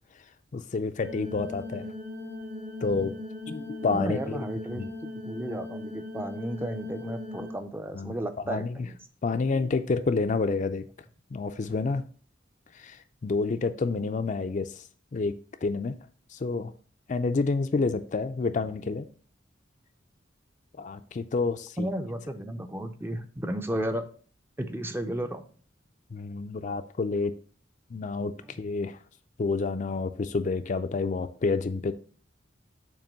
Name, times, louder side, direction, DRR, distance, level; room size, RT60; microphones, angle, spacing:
voice 1, 0.5-1.9 2.8-3.1 3.5-4.4 4.7-4.9 7.9-8.2 8.5-8.9 9.2-10.8 11.3-12.0 12.7-14.8 15.1-16.0 16.3-16.7 17.1-19.1 20.8-21.9 26.1-27.3 27.9-29.0 29.4-31.9, left 4 dB, 40° left, 9 dB, 0.4 m, -29 dB
sound 1, 1.0-7.5, left 2 dB, 65° right, 1.1 m, -39 dB
voice 2, 3.9-9.0 21.8-24.1 24.6-25.5, right 1 dB, 10° right, 7 dB, 0.5 m, -33 dB
7.2 x 3.0 x 5.3 m, 0.43 s
head